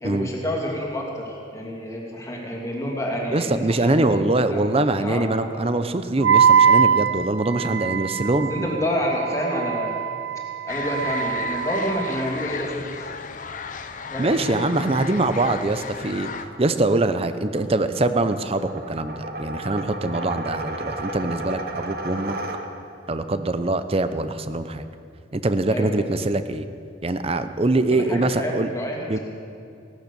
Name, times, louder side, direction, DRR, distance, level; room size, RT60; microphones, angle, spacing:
voice 1, 0.0-4.7 5.0-5.6 8.5-10.0 10.6-13.1 14.1-14.6 25.7-26.1 27.8-29.2, equal, 15° left, -2 dB, 2.6 m, -29 dB
voice 2, 3.3-8.7 14.2-16.3 16.6-22.3 23.1-24.9 25.3-26.7 27.0-28.7 29.1-29.2, right 2 dB, 30° right, 11 dB, 0.7 m, -23 dB
Wind instrument woodwind instrument, 6.2-12.4, right 7 dB, 65° right, 0.5 m, -22 dB
sound 1, 10.7-16.4, left 6 dB, 40° left, 0.7 m, -34 dB
sound 2, 14.8-23.1, right 1 dB, 50° right, 1.1 m, -35 dB
16.5 x 12.0 x 6.9 m, 2.6 s
head